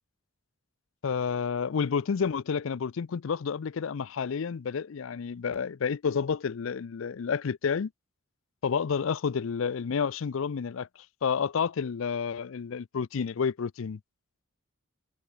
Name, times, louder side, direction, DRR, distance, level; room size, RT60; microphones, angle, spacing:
voice 1, 1.0-7.9 8.6-10.9 11.2-14.0, left 6 dB, 70° left, 0.4 m, -30 dB
head